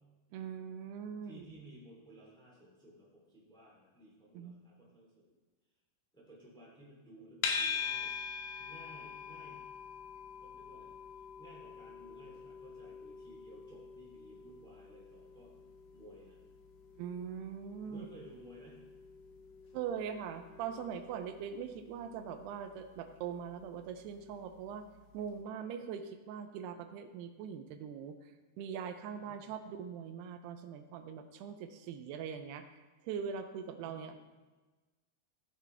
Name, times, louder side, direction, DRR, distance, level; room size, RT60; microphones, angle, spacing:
voice 1, 0.3-1.6 4.3-4.6 17.0-18.1 19.7-24.9 25.1-28.2 28.6-34.2, right 7 dB, 85° right, 8 dB, 2.7 m, -42 dB
voice 2, 1.2-5.3 6.1-8.2 8.6-9.6 10.4-15.5 15.9-16.4 17.8-18.8 29.2-29.8 33.7-34.2, right 1 dB, ahead, -6 dB, 2.2 m, -57 dB
sound 1, 7.4-24.6, left 6 dB, 70° left, 2.3 m, -44 dB
17.0 x 6.2 x 3.4 m, 1.3 s
omnidirectional pair, 4.6 m